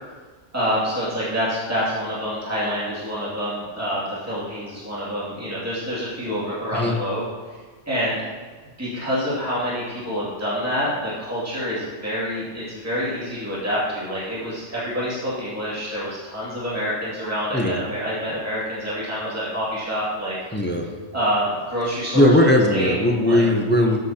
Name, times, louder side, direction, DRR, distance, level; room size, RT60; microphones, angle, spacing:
voice 1, 0.5-7.6 7.9-8.2 8.8-20.4 21.1-22.4 22.7-23.4, equal, 15° right, -9 dB, 2.3 m, -27 dB
voice 2, 20.5-20.9 22.1-24.0, left 1 dB, 10° left, 2 dB, 0.6 m, -18 dB
12.5 x 7.4 x 2.9 m, 1.4 s
omnidirectional pair, 1.2 m